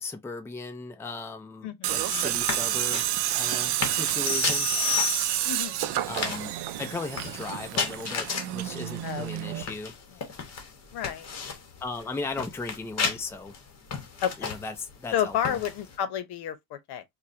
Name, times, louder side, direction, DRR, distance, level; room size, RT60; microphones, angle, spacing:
voice 1, 0.0-4.7 6.1-6.5 6.8-9.9 11.8-13.5 14.4-15.6, left 3 dB, 5° left, 0.5 m, -37 dB
voice 2, 1.6-1.9 4.0-4.3 5.4-5.8 9.0-9.3 10.9-11.3 14.2-14.5 15.1-17.0, left 9 dB, 75° left, 0.9 m, -31 dB
Tools, 1.8-9.6, right 13 dB, 75° right, 0.6 m, -29 dB
sound 1, 1.9-16.0, left 5 dB, 40° left, 1.3 m, -36 dB
sound 2, 4.2-5.8, left 17 dB, 55° left, 0.6 m, -31 dB
4.7 x 2.3 x 2.7 m
cardioid pair, 135°, 41 cm